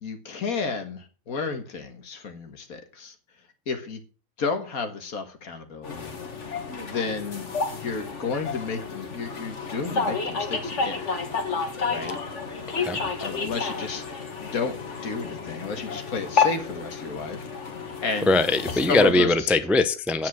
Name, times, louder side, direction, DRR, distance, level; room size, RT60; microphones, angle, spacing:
voice 1, 0.0-3.1 3.7-4.0 4.4-6.2 6.9-7.5 7.8-11.0 11.9-12.2 13.2-17.5 18.0-18.4 18.7-19.5 20.2-20.3, left 4 dB, 75° left, 2.0 m, -32 dB
sound 1, 5.8-19.1, left 5 dB, 55° left, 1.9 m, -30 dB
voice 2, 18.3-20.3, left 2 dB, ahead, 0.5 m, -21 dB
9.3 x 7.8 x 6.2 m
omnidirectional pair, 1.5 m